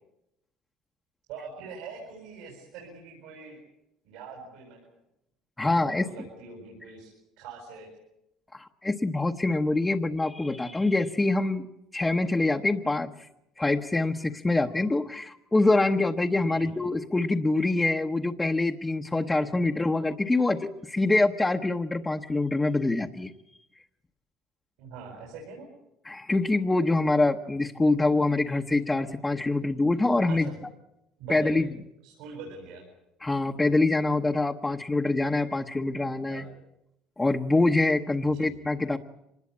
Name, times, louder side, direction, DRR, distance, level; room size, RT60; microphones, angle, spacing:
voice 1, 1.3-3.6 4.0-4.8 5.6-7.9 16.5-16.7 24.8-25.7 30.3-30.6 31.2-31.6 32.0-32.9 36.3-36.6 38.2-38.5, right 5 dB, 85° right, -1 dB, 7.8 m, -43 dB
voice 2, 5.6-6.1 8.5-11.6 11.9-13.3 13.6-23.3 26.0-30.5 31.3-31.7 33.2-36.4 37.2-39.0, left 2 dB, 10° left, 3 dB, 0.9 m, -25 dB
25.5 x 20.5 x 8.5 m, 0.86 s
cardioid pair, 140°, 0 cm